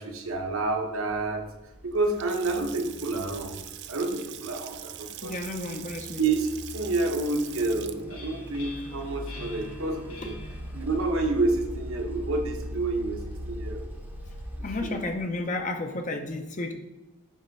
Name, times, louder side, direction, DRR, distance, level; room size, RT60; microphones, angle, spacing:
voice 1, 0.0-1.4 1.8-3.6 3.9-5.3 6.2-10.4 10.7-13.9 14.6-15.0, right 3 dB, 65° right, 3 dB, 1.0 m, -29 dB
sound 1, 1.2-15.6, equal, 10° right, 0.7 m, -41 dB
Water tap faucet / Sink (filling or washing) / Splash splatter, 1.9-10.0, right 13 dB, 50° right, 0.3 m, -43 dB
voice 2, 5.2-6.2 14.6-16.7, left 2 dB, 35° left, 4 dB, 0.5 m, -32 dB
sound 2, 7.5-13.1, left 1 dB, 80° left, 1.5 m, -47 dB
7.2 x 3.3 x 5.3 m, 1.0 s
head